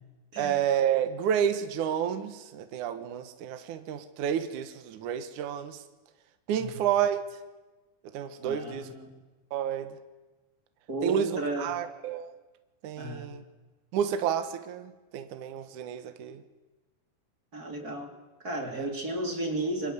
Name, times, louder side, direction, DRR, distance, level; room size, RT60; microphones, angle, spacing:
voice 1, 0.4-5.8 6.5-7.2 8.1-8.9 9.5-9.9 11.0-12.3 12.8-13.4 13.9-16.4 18.7-18.9, right 9 dB, 65° right, 2.4 m, -30 dB
voice 2, 8.4-9.2 10.9-11.7 13.0-13.3 17.5-18.1 18.4-19.9, right 1 dB, 25° right, 3.4 m, -33 dB
26.5 x 24.0 x 8.1 m
omnidirectional pair, 4.5 m